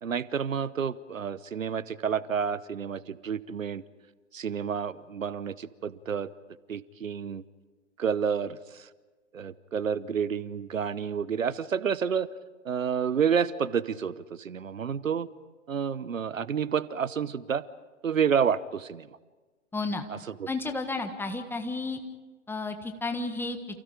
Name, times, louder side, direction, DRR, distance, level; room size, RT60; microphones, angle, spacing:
voice 1, 0.0-3.8 4.3-6.3 6.7-7.4 8.0-8.9 9.3-12.3 12.6-15.3 15.7-17.6 18.0-19.1 20.1-20.5, right 7 dB, 75° right, 18 dB, 1.0 m, -29 dB
voice 2, 19.7-20.0 20.5-22.0 22.5-23.6, left 3 dB, 5° left, 6 dB, 1.5 m, -32 dB
30.0 x 28.0 x 5.1 m, 1.3 s
figure-of-eight pair, 120°, 40 cm